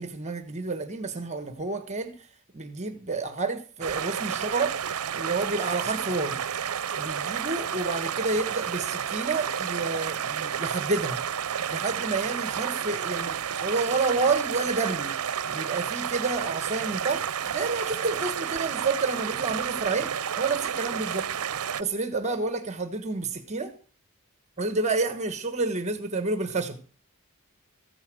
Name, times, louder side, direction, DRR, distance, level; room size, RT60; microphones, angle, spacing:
voice 1, 0.0-4.8 5.1-6.4 7.0-11.2 11.7-15.1 15.5-21.3 21.8-23.7 24.6-26.8, right 3 dB, 30° right, 1.3 m, -29 dB
sound 1, 3.8-21.8, right 8 dB, 85° right, 0.6 m, -31 dB
15.0 x 9.8 x 6.2 m
head